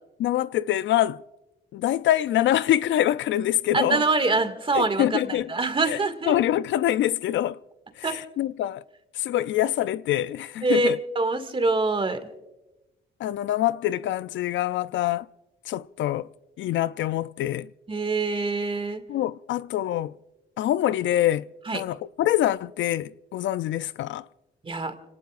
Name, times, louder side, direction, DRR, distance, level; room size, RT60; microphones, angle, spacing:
voice 1, 0.2-1.2 1.7-4.0 4.7-5.5 5.9-6.0 6.3-7.6 8.0-8.8 9.1-11.0 13.2-15.3 15.7-16.3 16.6-17.7 19.1-20.1 20.6-21.5 21.7-24.2, left 13 dB, 70° left, 0.4 m, -25 dB
voice 2, 3.7-6.4 8.0-8.2 10.6-12.3 17.9-19.0 21.7-21.8 24.6-24.9, right 3 dB, 25° right, 2.1 m, -25 dB
30.0 x 18.5 x 2.5 m
cardioid pair, 90°, 20 cm